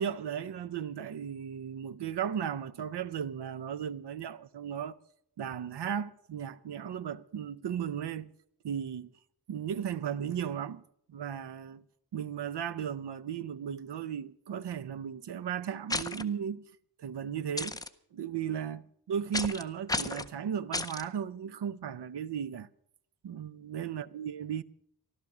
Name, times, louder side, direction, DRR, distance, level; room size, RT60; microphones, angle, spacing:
voice 1, 0.0-5.0 5.4-8.3 8.6-9.1 9.5-10.8 11.1-11.8 12.1-16.7 17.0-17.8 18.1-22.7 23.2-24.6, right 8 dB, 80° right, 0.7 m, -36 dB
sound 1, 15.9-16.2 17.6-17.9 19.3-19.6 19.9-20.3 20.7-21.0, left 2 dB, 10° left, 0.6 m, -32 dB
14.5 x 12.5 x 6.0 m
wide cardioid pair, 150°, 40 cm